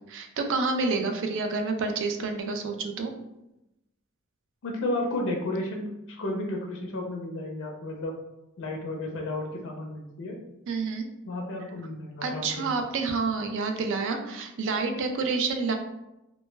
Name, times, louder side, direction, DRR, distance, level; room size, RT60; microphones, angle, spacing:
voice 1, 0.1-3.1 10.7-11.1 12.2-15.8, right 4 dB, 60° right, 5 dB, 0.4 m, -28 dB
voice 2, 4.6-8.1 8.6-10.4 11.2-12.7, left 1 dB, 65° left, 1 dB, 0.4 m, -32 dB
2.1 x 2.1 x 3.2 m, 0.91 s
head